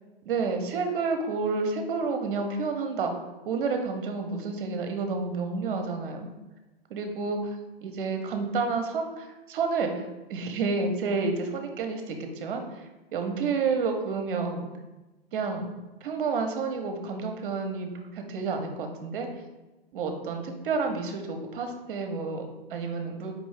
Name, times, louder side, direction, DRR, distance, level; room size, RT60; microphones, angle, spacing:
voice 1, 0.2-3.1 3.4-6.3 6.9-7.4 7.8-12.9 13.1-14.7 15.3-15.7 16.0-19.3 19.9-23.4, right 4 dB, 60° right, 5 dB, 0.7 m, -30 dB
4.8 x 2.6 x 3.2 m, 1.1 s
hypercardioid pair, 115°, 30 cm